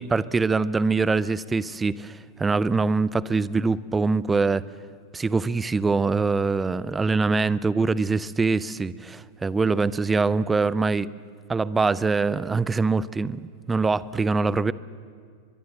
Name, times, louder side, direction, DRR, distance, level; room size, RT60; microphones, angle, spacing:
voice 1, 0.0-4.6 5.1-11.1 11.5-13.4 13.7-14.7, right 4 dB, 15° right, 20 dB, 0.6 m, -23 dB
23.5 x 22.0 x 7.7 m, 2.1 s
figure-of-eight pair, 90°, 0 cm